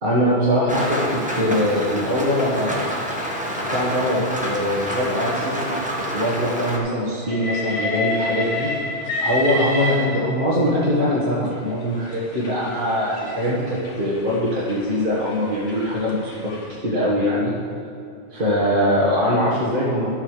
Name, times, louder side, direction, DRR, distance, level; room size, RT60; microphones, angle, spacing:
voice 1, 0.0-2.8 3.6-5.6 6.0-16.3 16.8-17.5 18.3-20.1, equal, 45° right, -7 dB, 1.7 m, -22 dB
Rain, 0.7-6.8, equal, 5° right, 1.3 m, -27 dB
Train, 7.3-10.7 11.5-16.8, left 1 dB, 80° left, 1.4 m, -30 dB
11.5 x 7.5 x 4.9 m, 2.6 s
omnidirectional pair, 1.2 m